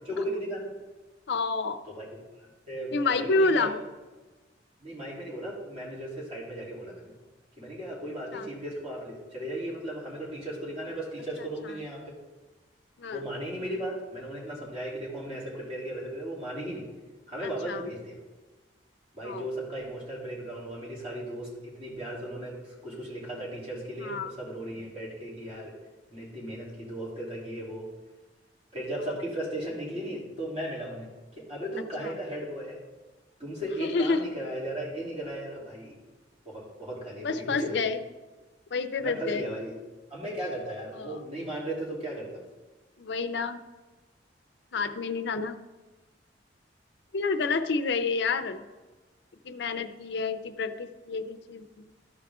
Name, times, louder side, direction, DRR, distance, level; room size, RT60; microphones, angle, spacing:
voice 1, 0.1-0.7 1.8-2.1 2.7-3.7 4.8-7.1 7.6-12.2 13.1-16.9 17.3-18.2 19.1-25.8 26.1-27.9 28.7-32.8 33.4-36.0 36.4-37.8 39.0-39.7 40.1-42.5, right 1 dB, 35° right, -5 dB, 3.1 m, -36 dB
voice 2, 1.3-1.8 2.9-3.8 8.3-8.5 13.0-13.2 17.4-17.8 19.2-19.5 24.0-24.3 32.0-32.1 33.8-34.2 37.2-38.0 38.7-39.5 41.0-41.2 43.0-43.6 44.7-45.6 47.1-48.6 49.4-51.8, left 4 dB, 70° left, 8 dB, 0.6 m, -29 dB
13.5 x 4.8 x 3.6 m, 1.2 s
head